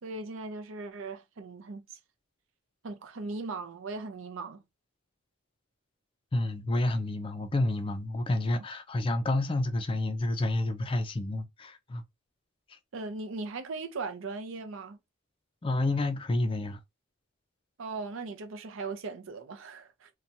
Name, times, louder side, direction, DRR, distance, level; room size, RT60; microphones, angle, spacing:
voice 1, 0.0-2.0 2.8-4.6 12.9-15.0 17.8-20.1, right 3 dB, 65° right, 0.5 m, -38 dB
voice 2, 6.3-12.0 15.6-16.8, left 2 dB, 25° left, 0.4 m, -29 dB
2.8 x 2.2 x 2.6 m
head